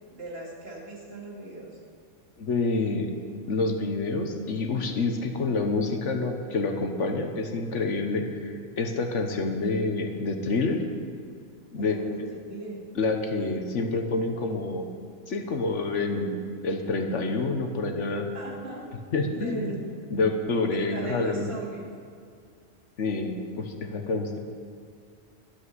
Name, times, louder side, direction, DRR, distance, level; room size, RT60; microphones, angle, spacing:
voice 1, 0.1-1.7 11.8-12.2 12.5-12.8 18.3-18.9 19.3-19.9 20.9-21.9, right 2 dB, 50° right, -3 dB, 2.5 m, -38 dB
voice 2, 2.4-3.1 3.5-10.8 11.7-12.0 12.9-14.9 15.3-18.3 19.1-19.7 20.1-21.5 23.0-24.4, left 3 dB, 65° left, 5 dB, 1.4 m, -28 dB
12.0 x 8.5 x 7.9 m, 2.3 s
omnidirectional pair, 1.3 m